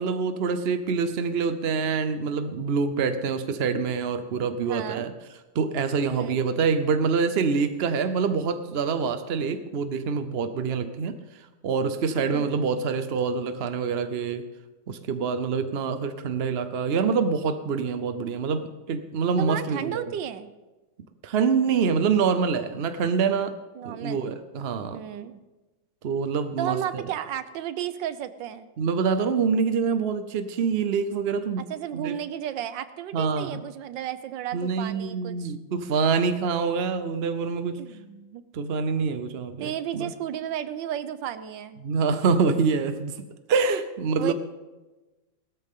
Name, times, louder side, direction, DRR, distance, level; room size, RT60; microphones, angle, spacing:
voice 1, 0.0-5.1 5.5-14.4 14.9-20.1 21.2-23.6 23.8-25.0 26.0-27.0 28.8-31.6 31.9-32.2 33.1-33.6 34.5-37.8 38.5-40.1 41.8-43.2 43.5-44.3, right 5 dB, 65° right, 10 dB, 0.6 m, -26 dB
voice 2, 4.6-5.0 6.1-6.4 12.3-12.5 19.4-20.5 23.7-24.3 24.9-25.4 26.6-28.7 31.7-35.5 37.8-38.4 39.6-41.8 44.2-44.3, right 10 dB, 80° right, 12 dB, 1.5 m, -33 dB
18.5 x 13.5 x 3.7 m, 1.1 s
omnidirectional pair, 2.0 m